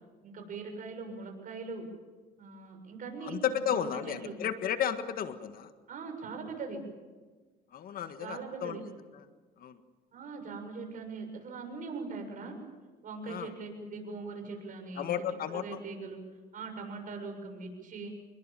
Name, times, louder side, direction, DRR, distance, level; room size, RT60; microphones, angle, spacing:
voice 1, 0.2-1.9 2.4-4.4 5.9-6.8 8.2-8.8 10.1-12.6 13.0-16.2 16.5-18.1, right 4 dB, 50° right, 4 dB, 7.1 m, -41 dB
voice 2, 3.2-5.7 7.7-8.8 9.6-9.8 13.3-13.5 15.0-15.6, left 9 dB, 60° left, 9 dB, 1.7 m, -33 dB
27.5 x 22.0 x 7.6 m, 1.3 s
cardioid pair, 110°, 17 cm